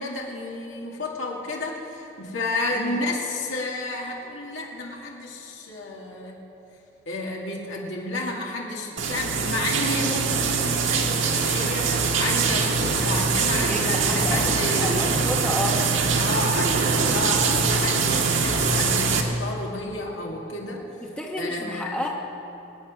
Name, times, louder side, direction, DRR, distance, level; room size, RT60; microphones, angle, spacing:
voice 1, 0.0-6.4 7.1-15.3 16.2-20.9 21.4-22.0, left 2 dB, 70° left, -2 dB, 2.3 m, -31 dB
sound 1, 9.0-19.2, right 4 dB, 75° right, 1.6 m, -23 dB
voice 2, 13.7-15.8 21.0-22.1, left 1 dB, 5° left, -2 dB, 1.1 m, -31 dB
24.0 x 9.3 x 6.4 m, 3.0 s
head